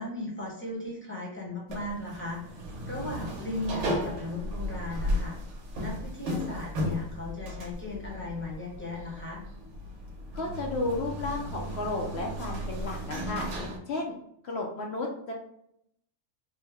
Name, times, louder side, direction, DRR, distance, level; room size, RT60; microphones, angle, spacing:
voice 1, 0.0-2.6 2.9-5.4 5.8-9.4, left 2 dB, 10° left, -5 dB, 0.9 m, -37 dB
sound 1, 1.7-13.8, equal, 75° right, 1.1 m, -35 dB
voice 2, 10.3-13.5 13.9-14.1 14.4-15.3, left 2 dB, 65° left, 0 dB, 0.8 m, -33 dB
3.3 x 2.1 x 3.3 m, 0.73 s
omnidirectional pair, 1.3 m